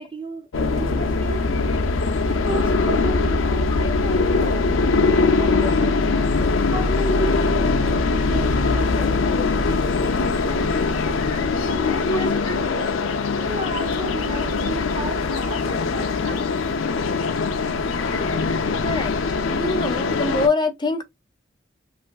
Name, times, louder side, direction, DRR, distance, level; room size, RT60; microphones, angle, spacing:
voice 1, 0.0-1.7 2.3-5.0 5.4-6.3 6.7-7.7 8.1-9.3 9.6-11.2 11.6-12.9 13.4-16.5, right 2 dB, 25° right, 0.5 m, -35 dB
sound 1, 0.5-20.5, left 3 dB, 85° left, 0.6 m, -22 dB
sound 2, 4.3-13.5, right 2 dB, 65° right, 1.0 m, -47 dB
voice 2, 12.1-12.6 13.1-13.2 16.2-16.4 17.9-18.6 18.8-19.2 19.5-21.0, left 2 dB, 25° left, 0.4 m, -26 dB
3.3 x 2.6 x 2.3 m
head